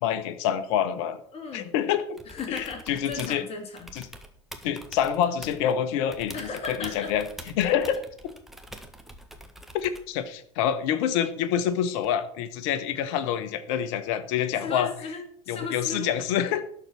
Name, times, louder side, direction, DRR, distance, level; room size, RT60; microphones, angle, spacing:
voice 1, 0.0-1.2 1.5-2.2 2.5-3.4 3.9-4.0 4.6-7.2 7.5-8.1 9.7-14.9 15.5-16.6, left 9 dB, 60° left, 11 dB, 1.2 m, -27 dB
voice 2, 1.3-1.7 2.3-3.9 6.3-7.1 14.6-16.1, left 4 dB, 40° left, 4 dB, 2.3 m, -36 dB
sound 1, 2.2-3.4 3.8-5.7 6.1-10.1 12.0-12.1, right 1 dB, ahead, 1.6 m, -45 dB
12.0 x 4.8 x 7.4 m, 0.62 s
hypercardioid pair, 75°, 16 cm